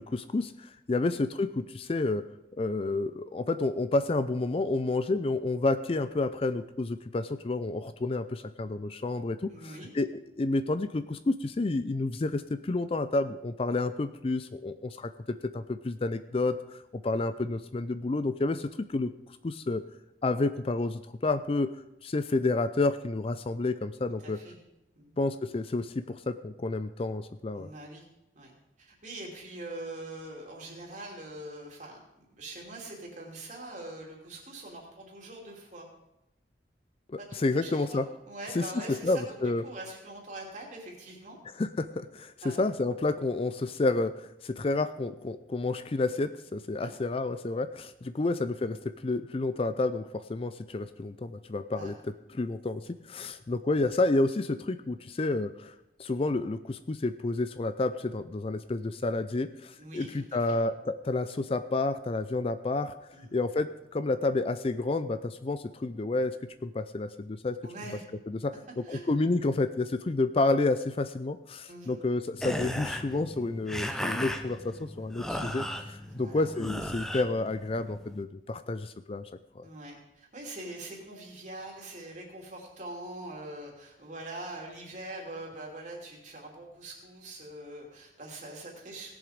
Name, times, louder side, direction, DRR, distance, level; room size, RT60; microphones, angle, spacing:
voice 1, 0.0-2.2 2.6-10.1 10.4-19.1 19.4-19.8 20.2-21.7 22.0-24.4 25.2-27.7 37.1-38.1 38.6-39.6 41.6-51.9 52.3-55.7 56.0-62.9 63.3-66.4 66.6-67.6 68.3-79.3 79.6-79.7, left 2 dB, 35° left, 12 dB, 0.4 m, -30 dB
voice 2, 9.5-9.9 17.1-17.3 24.2-24.6 24.9-25.1 27.5-28.1 28.3-28.5 28.8-32.0 32.3-35.9 37.2-41.4 42.4-42.6 46.8-46.9 48.1-48.3 51.7-51.9 59.8-60.6 63.1-63.3 67.6-68.1 68.8-69.0 71.7-72.0 76.0-76.5 79.6-89.1, right 2 dB, 45° right, -1 dB, 2.9 m, -43 dB
sound 1, 72.4-78.2, equal, 5° left, 0.7 m, -36 dB
17.5 x 7.2 x 5.1 m, 0.88 s
head